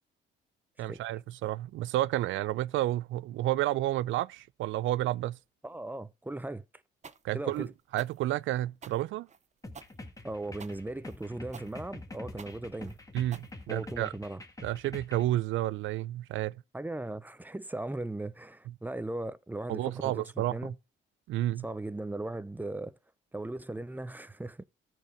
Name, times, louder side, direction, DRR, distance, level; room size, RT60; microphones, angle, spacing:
voice 1, 0.8-5.4 7.2-7.7 7.9-9.3 13.1-14.1 14.6-16.6 19.7-20.7 21.3-21.6, right 15 dB, 80° right, 0.4 m, -31 dB
voice 2, 5.6-6.6 7.3-7.7 10.2-13.0 13.7-14.4 16.7-20.8 21.6-23.0 23.3-24.7, right 2 dB, 10° right, 0.6 m, -38 dB
sound 1, 7.0-14.1, right 6 dB, 35° right, 0.9 m, -51 dB
sound 2, 9.6-15.3, left 2 dB, 15° left, 1.7 m, -46 dB
13.0 x 4.6 x 5.0 m
cardioid pair, 90°, 20 cm